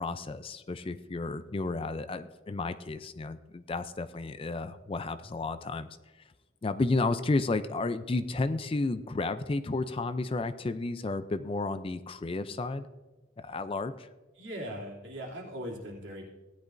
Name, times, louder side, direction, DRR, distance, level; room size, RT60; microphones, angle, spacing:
voice 1, 0.0-5.9 6.6-12.9 13.4-14.1, left 3 dB, 30° left, 12 dB, 0.4 m, -32 dB
voice 2, 14.4-16.3, equal, 70° right, -2 dB, 2.7 m, -39 dB
16.5 x 10.5 x 2.6 m, 1.2 s
head